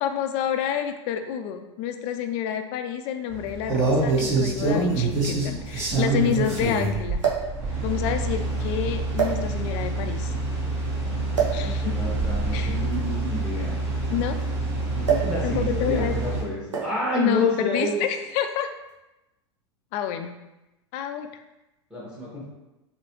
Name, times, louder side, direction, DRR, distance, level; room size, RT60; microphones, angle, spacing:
voice 1, 0.0-7.2 7.8-10.3 11.5-12.0 12.5-12.7 14.1-14.4 15.4-16.1 17.1-18.7 19.9-20.3 20.9-21.3, left 9 dB, 45° left, 7 dB, 0.4 m, -28 dB
sound 1, 3.3-16.4, right 2 dB, 45° right, 1.5 m, -26 dB
sound 2, 3.5-3.6 4.7-4.8 5.0-5.1 7.2-7.6 8.4-8.6 9.1-9.8 11.3-11.7 12.8-14.4 15.0-15.4 15.7-16.0 16.7-17.1 18.1-18.3, right 8 dB, 90° right, 0.7 m, -27 dB
voice 2, 6.1-6.5 11.4-11.5 11.8-13.7 14.9-18.0 21.9-22.4, equal, 5° right, -6 dB, 1.2 m, -29 dB
3.1 x 2.7 x 2.9 m, 0.98 s
hypercardioid pair, 95°, 15 cm